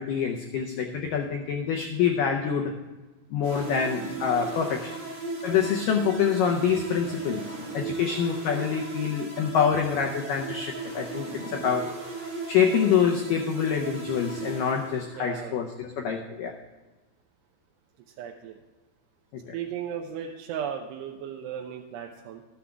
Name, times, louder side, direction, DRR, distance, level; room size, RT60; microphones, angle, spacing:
voice 1, 0.0-2.8 3.3-4.9 5.4-12.0 12.5-16.6 19.3-19.5, left 7 dB, 85° left, 3 dB, 1.9 m, -26 dB
sound 1, 3.4-15.3, right 3 dB, 35° right, 3.8 m, -37 dB
voice 2, 15.1-15.7 18.1-18.6 19.5-22.4, right 8 dB, 90° right, 1 dB, 2.8 m, -36 dB
13.5 x 10.0 x 3.5 m, 1.2 s
omnidirectional pair, 4.9 m